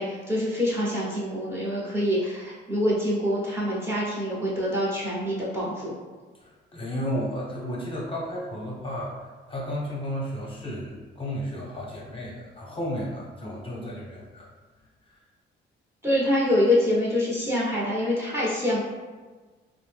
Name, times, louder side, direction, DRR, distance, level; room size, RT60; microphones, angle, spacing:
voice 1, 0.0-5.9 16.0-18.8, left 1 dB, 15° right, -7 dB, 0.8 m, -25 dB
voice 2, 6.4-14.5 15.1-15.2, equal, 25° left, -4 dB, 0.8 m, -33 dB
2.6 x 2.0 x 3.3 m, 1.3 s
cardioid pair, 90°, 20 cm